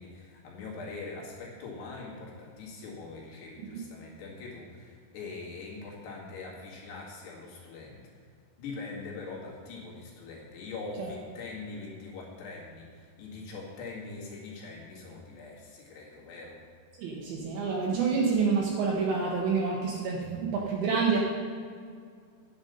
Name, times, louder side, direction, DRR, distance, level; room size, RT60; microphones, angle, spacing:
voice 1, 0.0-8.3 8.6-16.6, left 3 dB, 60° left, -3 dB, 3.7 m, -42 dB
voice 2, 17.0-21.2, right 5 dB, 85° right, -2 dB, 2.1 m, -28 dB
9.8 x 8.0 x 5.4 m, 2.1 s
omnidirectional pair, 5.9 m